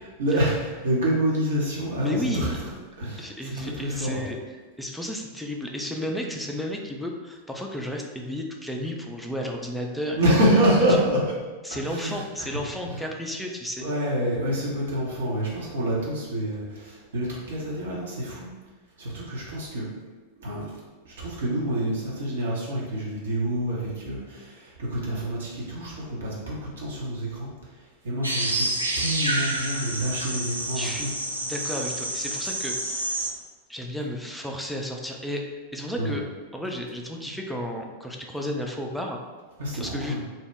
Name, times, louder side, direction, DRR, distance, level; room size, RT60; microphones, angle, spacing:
voice 1, 0.2-2.7 3.0-4.2 10.2-11.2 11.9-12.5 12.9-13.0 13.8-18.5 19.0-19.9 20.4-20.7 21.0-28.7 29.0-31.1 36.0-36.2 39.6-40.2, right 1 dB, 65° right, -5 dB, 0.7 m, -27 dB
voice 2, 2.0-2.6 3.2-4.4 4.8-10.2 11.6-13.9 30.8-31.1 31.4-33.2 33.7-35.4 35.7-36.2 36.5-39.2 39.7-40.1, equal, ahead, 0 dB, 0.4 m, -32 dB
sound 1, 28.2-33.3, right 1 dB, 85° right, 0.3 m, -29 dB
2.7 x 2.1 x 3.2 m, 1.3 s
figure-of-eight pair, 90°, 0 cm